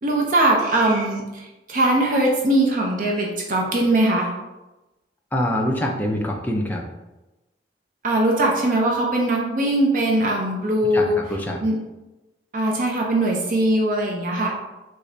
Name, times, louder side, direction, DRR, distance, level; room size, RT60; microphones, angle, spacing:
voice 1, 0.0-4.3 8.0-11.2 11.6-11.8 12.5-14.6, right 1 dB, 45° right, -1 dB, 0.5 m, -21 dB
voice 2, 5.3-6.8 10.9-11.6, left 1 dB, 10° left, 0 dB, 0.4 m, -24 dB
3.1 x 2.4 x 3.8 m, 1.0 s
head